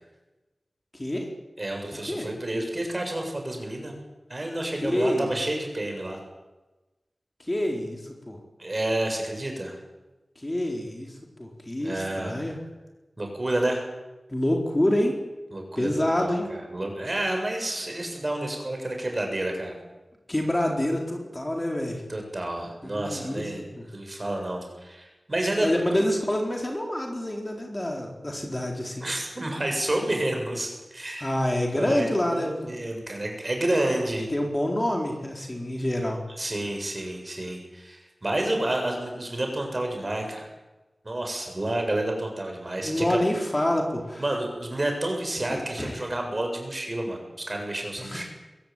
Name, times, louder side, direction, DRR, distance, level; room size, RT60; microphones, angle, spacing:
voice 1, 0.9-1.3 2.1-2.3 4.8-5.4 7.5-8.4 10.4-12.6 14.3-15.2 15.8-16.5 20.3-22.0 22.8-23.5 23.8-23.9 25.6-29.1 31.2-32.5 34.3-36.2 42.8-44.2 45.5-46.1 48.0-48.2, left 1 dB, 20° left, 1 dB, 4.3 m, -27 dB
voice 2, 1.6-3.9 4.3-6.2 8.6-9.8 11.8-12.4 13.2-13.8 15.5-19.8 22.1-25.7 29.0-34.3 36.4-40.5 41.0-43.2 44.2-48.3, right 1 dB, 35° right, 3 dB, 7.3 m, -30 dB
22.5 x 17.0 x 9.4 m, 1.1 s
wide cardioid pair, 80°, 0 cm